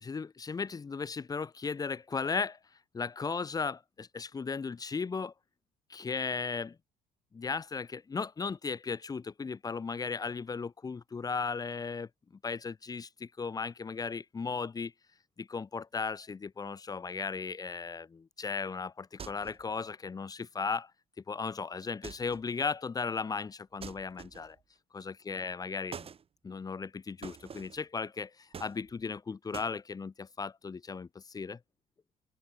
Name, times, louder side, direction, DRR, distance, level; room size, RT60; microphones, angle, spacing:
voice 1, 0.0-2.6 2.9-5.3 5.9-6.8 7.3-12.1 12.4-14.9 15.4-20.9 21.3-24.6 24.9-26.1 26.4-31.6, left 5 dB, 20° left, 0.7 m, -36 dB
sound 1, 19.2-19.7 22.0-22.5 23.8-24.6 25.9-26.2 27.2-27.8 28.5-29.2 29.5-29.8, right 7 dB, 35° right, 1.4 m, -46 dB
open air
cardioid pair, 110°, 17 cm